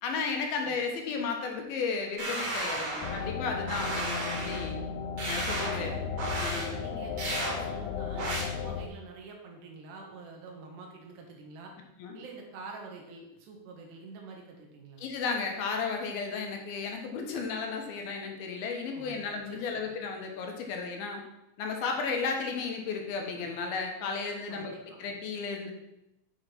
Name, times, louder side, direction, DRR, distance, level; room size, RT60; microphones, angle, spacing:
voice 1, 0.0-4.8 5.3-5.9 6.4-6.7 12.0-12.2 15.0-21.2 21.6-24.7 25.0-25.7, left 5 dB, 70° left, 2 dB, 2.9 m, -34 dB
sound 1, 2.2-3.3 3.7-4.6 5.2-5.8 6.2-6.7 7.2-7.6 8.2-8.4, right 2 dB, 45° right, 3.6 m, -33 dB
sound 2, 3.0-8.9, left 6 dB, 85° left, 2.7 m, -35 dB
voice 2, 3.2-3.8 5.7-6.1 6.8-11.7 12.1-15.0 18.9-19.9 24.5-25.0, right 4 dB, 80° right, 1 dB, 3.7 m, -47 dB
10.0 x 5.0 x 6.0 m, 0.89 s
omnidirectional pair, 4.8 m